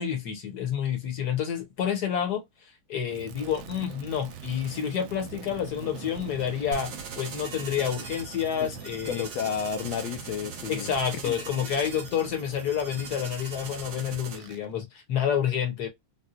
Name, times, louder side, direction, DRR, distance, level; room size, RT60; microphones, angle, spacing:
voice 1, 0.0-2.4 2.9-9.3 10.7-15.9, left 8 dB, 55° left, 1.4 m, -29 dB
Crackle, 3.1-14.7, right 6 dB, 80° right, 1.4 m, -44 dB
sound 1, 6.7-14.4, right 5 dB, 60° right, 1.2 m, -42 dB
voice 2, 8.6-10.9 11.2-12.0, left 8 dB, 80° left, 1.6 m, -33 dB
4.0 x 2.2 x 2.4 m
omnidirectional pair, 2.2 m